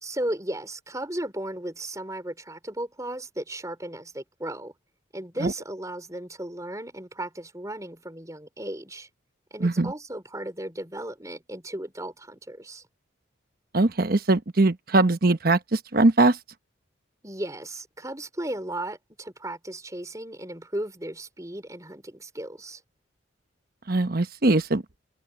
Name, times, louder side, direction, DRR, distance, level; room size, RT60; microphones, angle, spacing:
voice 1, 0.0-4.7 5.1-9.1 9.5-12.8 17.2-22.8, right 1 dB, 15° right, 4.1 m, -35 dB
voice 2, 9.6-9.9 13.7-16.4 23.9-24.8, right 2 dB, 50° right, 1.1 m, -21 dB
head